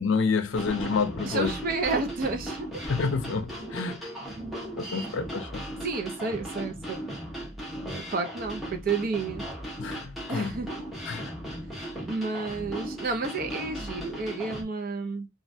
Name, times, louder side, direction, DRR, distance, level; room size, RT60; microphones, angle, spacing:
voice 1, 0.0-1.6 2.9-4.1 4.7-5.6 9.8-10.5 11.1-11.3, left 5 dB, 70° left, 0.5 m, -28 dB
sound 1, 0.5-14.6, right 1 dB, ahead, 1.0 m, -37 dB
voice 2, 1.2-2.7 5.8-7.0 7.9-9.4 10.3-10.7 12.1-15.3, right 3 dB, 50° right, 0.6 m, -31 dB
3.1 x 2.4 x 2.6 m
head